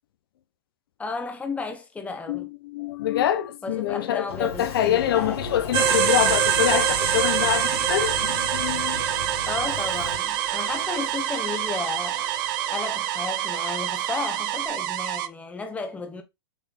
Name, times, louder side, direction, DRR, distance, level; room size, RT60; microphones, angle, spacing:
voice 1, 1.0-2.5 3.6-5.4 9.5-12.3 12.7-16.2, left 4 dB, 10° left, 1.1 m, -33 dB
voice 2, 2.3-9.0, left 11 dB, 65° left, 0.9 m, -25 dB
Sliding door, 4.3-10.2, left 4 dB, 80° left, 2.2 m, -36 dB
sound 1, 5.7-14.7, right 8 dB, 40° right, 1.5 m, -27 dB
sound 2, 5.8-15.3, right 13 dB, 55° right, 0.6 m, -29 dB
7.5 x 3.7 x 3.6 m
hypercardioid pair, 120°, 13 cm